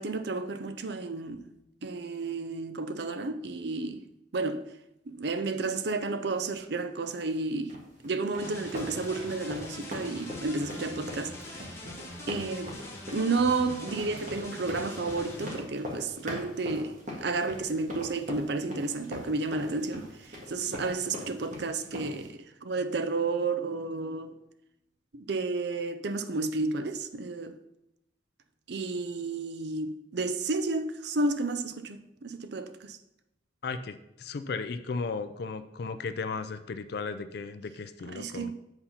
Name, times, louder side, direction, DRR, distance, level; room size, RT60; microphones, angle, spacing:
voice 1, 0.0-1.5 1.8-4.0 4.3-4.6 5.1-7.8 8.0-11.8 12.3-12.8 13.1-16.9 17.2-24.4 25.1-27.6 28.7-33.0 38.1-38.5, right 3 dB, 60° right, 0.5 m, -32 dB
sound 1, 7.7-22.3, left 1 dB, 40° right, 1.7 m, -41 dB
sound 2, 8.4-15.6, left 1 dB, 15° left, 1.3 m, -43 dB
voice 2, 33.6-38.5, left 4 dB, 55° left, 0.4 m, -35 dB
7.9 x 4.2 x 5.6 m
head